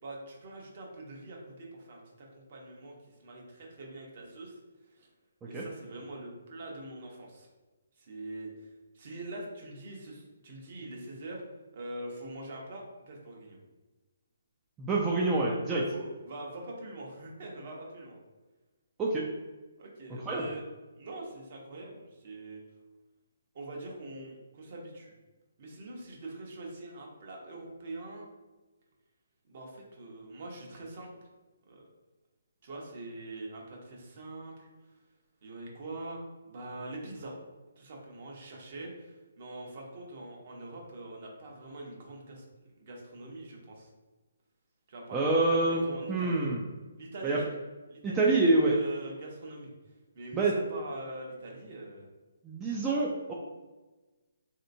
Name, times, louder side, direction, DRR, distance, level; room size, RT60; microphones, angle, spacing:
voice 1, 0.0-4.6 4.9-5.1 5.5-7.5 8.0-11.4 11.7-13.6 15.7-18.2 19.8-20.6 20.9-22.6 23.5-25.1 25.6-28.3 29.5-31.1 31.7-31.8 32.6-34.7 35.4-37.4 37.8-42.4 42.8-43.9 44.9-46.5 47.0-47.6 47.9-48.4 48.7-49.7 50.1-52.1, right 2 dB, 45° right, -1 dB, 0.9 m, -43 dB
voice 2, 14.8-15.8 19.0-19.3 20.3-20.4 45.1-46.6 47.2-47.4 48.0-48.8 50.3-50.5 52.4-53.3, right 2 dB, 15° right, -4 dB, 0.3 m, -26 dB
3.2 x 2.8 x 2.6 m, 1.2 s
hypercardioid pair, 155°, 0 cm